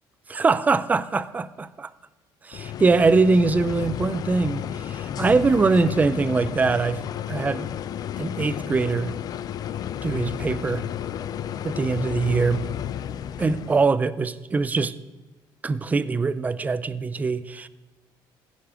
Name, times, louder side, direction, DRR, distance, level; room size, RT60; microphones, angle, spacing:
voice 1, 0.3-1.9 2.4-7.0 7.3-7.7 8.2-9.1 10.0-10.9 11.6-12.6 13.4-15.0 15.6-17.7, right 4 dB, 15° right, 0.5 m, -22 dB
sound 1, 2.5-13.9, left 10 dB, 45° left, 0.5 m, -32 dB
15.0 x 10.5 x 5.0 m
cardioid pair, 135°, 9 cm